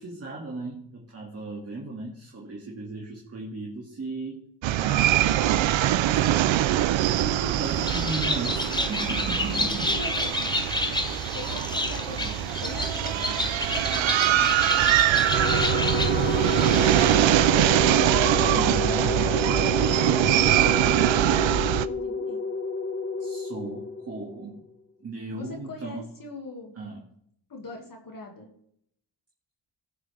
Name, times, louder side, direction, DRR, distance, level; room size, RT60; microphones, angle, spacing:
voice 1, 0.0-4.5 4.8-5.5 6.1-6.4 7.0-9.9 18.4-19.6 23.2-24.6 25.0-26.1 26.8-27.0, right 2 dB, 30° right, -2 dB, 2.1 m, -36 dB
sound 1, 4.6-21.9, right 13 dB, 80° right, 0.6 m, -23 dB
Bird, 7.6-17.4, left 1 dB, 10° left, 0.9 m, -30 dB
voice 2, 9.5-10.5 10.8-11.1 11.3-13.4 13.8-15.7 17.8-22.4 25.3-26.8 27.5-28.5, left 3 dB, 45° left, 1 dB, 2.1 m, -41 dB
sound 2, 15.3-24.6, left 4 dB, 25° left, 1.5 m, -30 dB
19.5 x 7.4 x 3.4 m, 0.70 s
wide cardioid pair, 155°, 45 cm